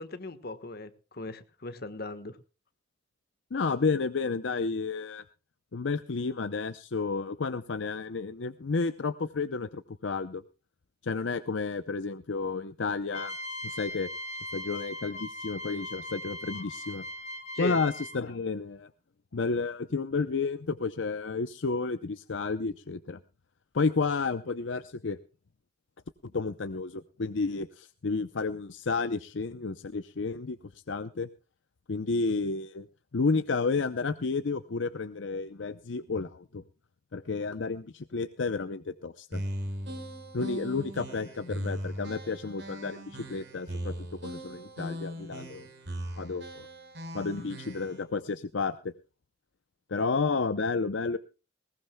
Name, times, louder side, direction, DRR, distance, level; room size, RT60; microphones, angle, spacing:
voice 1, 0.0-2.4 17.5-17.8, left 2 dB, 55° left, 11 dB, 1.3 m, -37 dB
voice 2, 3.5-5.2 5.7-10.4 11.0-13.3 13.6-14.1 14.5-17.1 17.6-18.9 19.3-23.2 23.7-25.2 26.3-30.6 30.9-31.3 31.9-32.9 33.1-36.6 37.1-39.4 40.3-43.9 44.2-45.7 46.2-46.7 47.1-48.9 49.9-51.2, left 4 dB, 70° left, 11 dB, 0.6 m, -31 dB
sound 1, 13.1-18.4, left 1 dB, 35° left, 1.7 m, -39 dB
sound 2, 39.3-48.0, equal, 60° right, 4.8 m, -39 dB
20.5 x 18.5 x 2.2 m, 0.32 s
head